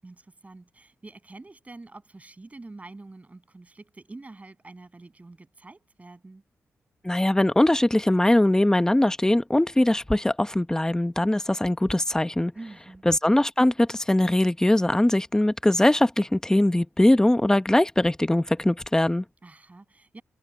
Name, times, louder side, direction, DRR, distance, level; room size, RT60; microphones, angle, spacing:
voice 1, 0.0-6.4 12.5-13.0 19.4-20.2, right 2 dB, 30° right, 7.9 m, -46 dB
voice 2, 7.0-12.5 13.1-19.2, left 1 dB, 10° left, 0.9 m, -21 dB
cardioid pair, 60°, 5 cm